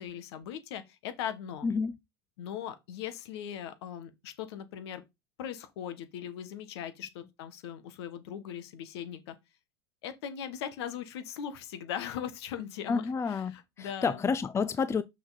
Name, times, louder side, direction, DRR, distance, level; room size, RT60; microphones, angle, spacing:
voice 1, 0.0-1.6 2.4-5.0 5.4-9.3 10.0-14.2, left 9 dB, 70° left, 1.6 m, -39 dB
voice 2, 1.6-2.0 12.9-15.0, left 5 dB, 20° left, 0.6 m, -30 dB
6.2 x 6.0 x 4.2 m
hypercardioid pair, 90°, 14 cm